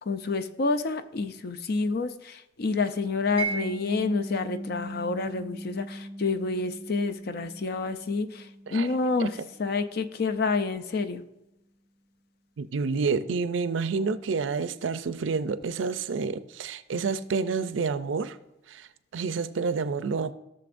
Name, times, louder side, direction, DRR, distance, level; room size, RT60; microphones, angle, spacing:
voice 1, 0.1-9.3 9.6-11.2, left 3 dB, 55° left, 0.5 m, -28 dB
Mallet percussion, 3.4-10.1, right 2 dB, 25° left, 2.1 m, -38 dB
voice 2, 12.6-18.4 18.7-20.3, right 5 dB, 75° right, 0.4 m, -29 dB
15.5 x 6.8 x 2.5 m
head